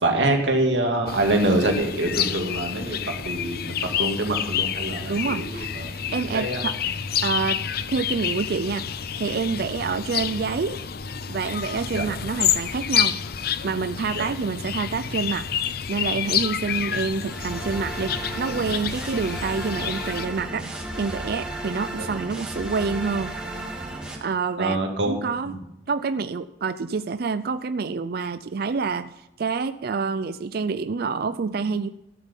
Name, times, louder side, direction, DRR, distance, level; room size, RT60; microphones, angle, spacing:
voice 1, 0.0-3.0 3.2-5.9 6.3-6.6 11.9-12.1 14.1-14.2 22.0-22.1 24.6-25.2 25.5-25.6, right 1 dB, 90° right, 3 dB, 2.4 m, -25 dB
sound 1, 1.1-20.3, left 8 dB, 60° left, 0.7 m, -29 dB
voice 2, 5.1-6.8 7.2-7.6 7.9-8.9 9.2-10.8 11.3-13.2 13.6-15.5 15.9-18.1 18.4-23.3 24.2-24.8 25.1-25.5 25.9-31.9, right 4 dB, 60° right, 12 dB, 0.4 m, -27 dB
sound 2, 17.3-24.1, right 1 dB, 5° right, 2.7 m, -33 dB
14.5 x 8.2 x 5.4 m, 0.86 s
head